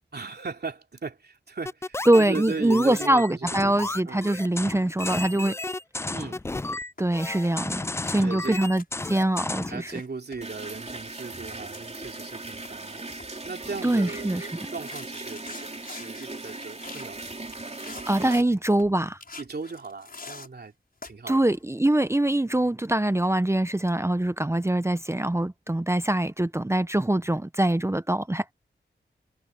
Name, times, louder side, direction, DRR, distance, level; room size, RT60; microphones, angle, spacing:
voice 1, 0.1-4.3 6.1-6.4 8.2-8.6 9.7-13.0 13.4-18.8 19.4-20.7 21.0-21.4, right 4 dB, 60° right, 2.9 m, -38 dB
sound 1, 1.7-9.8, left 2 dB, 15° left, 0.4 m, -33 dB
voice 2, 2.1-5.5 7.0-10.0 13.8-14.5 18.1-19.2 21.3-28.4, right 1 dB, 15° right, 0.8 m, -24 dB
sound 2, 6.4-7.5 7.8-8.1 8.4-10.1 10.3-17.3 17.5-18.4 18.8-18.9 19.2-20.5 21.0-21.2 21.5-21.9, left 3 dB, 50° left, 6.2 m, -46 dB
sound 3, 10.4-18.4, right 2 dB, 35° right, 3.0 m, -38 dB
cardioid pair, 55°, 19 cm